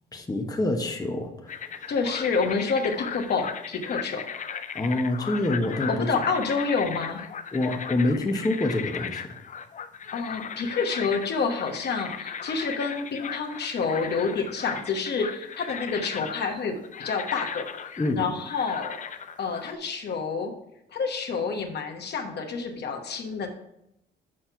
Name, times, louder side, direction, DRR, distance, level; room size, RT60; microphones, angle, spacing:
voice 1, 0.1-1.8 4.7-6.1 7.5-9.4 18.0-18.2, left 2 dB, 20° left, 2 dB, 1.1 m, -26 dB
sound 1, 1.5-19.7, left 7 dB, 40° left, 0.5 m, -37 dB
voice 2, 1.9-4.2 5.9-7.2 10.1-17.6 18.1-20.5 20.9-23.5, left 4 dB, 55° left, 3 dB, 1.2 m, -28 dB
6.3 x 4.3 x 5.7 m, 0.82 s
cardioid pair, 90°, 20 cm